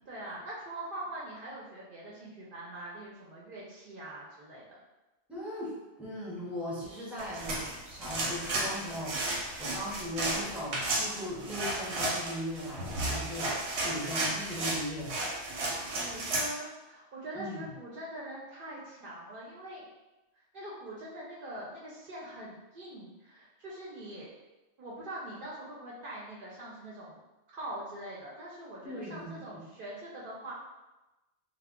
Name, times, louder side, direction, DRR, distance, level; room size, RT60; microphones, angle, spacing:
voice 1, 0.0-4.8 15.7-19.8 20.5-24.3 24.8-27.2 27.5-30.5, right 1 dB, 60° right, -5 dB, 0.7 m, -43 dB
voice 2, 5.3-15.1 17.4-17.6 28.8-29.6, equal, ahead, -6 dB, 0.5 m, -39 dB
sound 1, 7.2-16.5, right 2 dB, 90° right, 0.9 m, -33 dB
2.2 x 2.1 x 3.5 m, 1.0 s
omnidirectional pair, 1.1 m